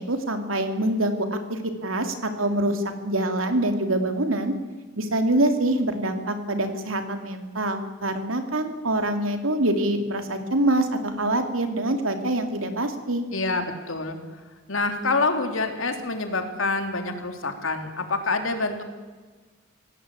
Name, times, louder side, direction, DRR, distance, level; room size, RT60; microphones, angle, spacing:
voice 1, 0.0-4.5 5.0-13.3, right 1 dB, 80° right, 6 dB, 3.0 m, -25 dB
voice 2, 13.3-14.2 14.7-18.8, left 3 dB, 75° left, 6 dB, 3.3 m, -26 dB
26.0 x 17.5 x 8.6 m, 1.4 s
head